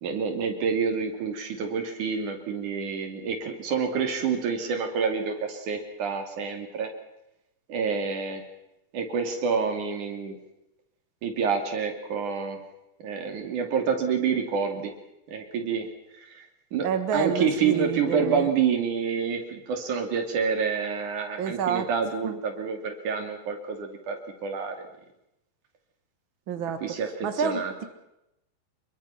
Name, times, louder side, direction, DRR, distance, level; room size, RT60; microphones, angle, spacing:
voice 1, 0.0-6.9 7.7-8.5 8.9-10.4 11.2-12.6 13.0-14.9 15.3-15.9 16.1-16.4 16.7-24.8 26.8-27.7, right 6 dB, 50° right, 4 dB, 3.8 m, -28 dB
voice 2, 16.8-18.5 21.4-21.8 22.2-22.4 26.5-26.8 27.2-27.8, right 6 dB, 70° right, 8 dB, 1.2 m, -28 dB
27.0 x 22.5 x 5.8 m, 0.86 s
omnidirectional pair, 4.9 m